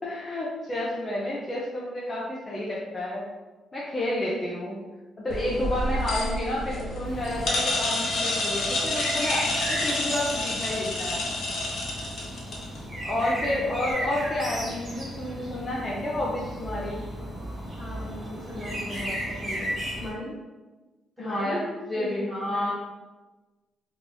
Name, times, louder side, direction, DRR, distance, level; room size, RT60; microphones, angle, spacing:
voice 1, 0.0-3.2 3.7-4.8 5.2-11.2 13.0-17.0 21.2-21.6 21.9-22.7, left 1 dB, 25° left, -5 dB, 0.5 m, -30 dB
sound 1, 5.3-12.8, left 2 dB, 60° left, 0.7 m, -29 dB
sound 2, 7.0-20.1, equal, 25° right, 0.9 m, -35 dB
voice 2, 13.2-13.7 17.7-20.3 21.2-22.7, left 1 dB, 5° right, -6 dB, 1.2 m, -38 dB
3.0 x 2.4 x 3.8 m, 1.2 s
cardioid pair, 145°, 0 cm